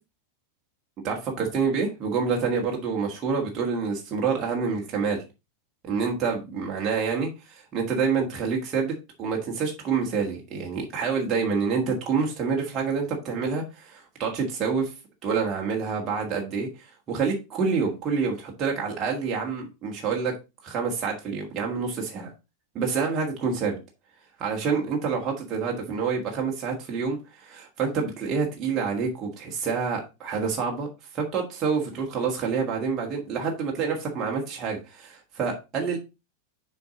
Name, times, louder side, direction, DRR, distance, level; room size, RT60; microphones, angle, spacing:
voice 1, 1.0-5.2 5.8-14.9 15.2-20.3 20.6-22.3 22.7-23.8 24.4-30.9 31.1-36.0, right 5 dB, 30° right, -1 dB, 1.6 m, -27 dB
6.8 x 4.7 x 3.8 m, 0.26 s
figure-of-eight pair, 90°, 0 cm